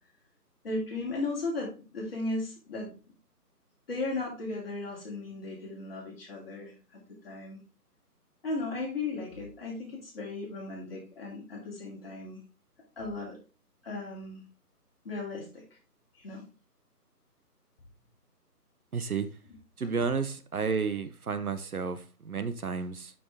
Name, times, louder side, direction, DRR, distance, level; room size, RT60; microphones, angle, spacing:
voice 1, 0.6-3.1 3.9-7.6 8.4-12.4 13.0-13.4 13.8-14.4 15.0-15.8 16.1-16.5 19.8-20.0, left 2 dB, 35° left, 2.7 m, -36 dB
voice 2, 18.9-19.3 19.8-23.1, right 5 dB, 60° right, 0.8 m, -31 dB
6.5 x 5.7 x 3.5 m
figure-of-eight pair, 155°, 48 cm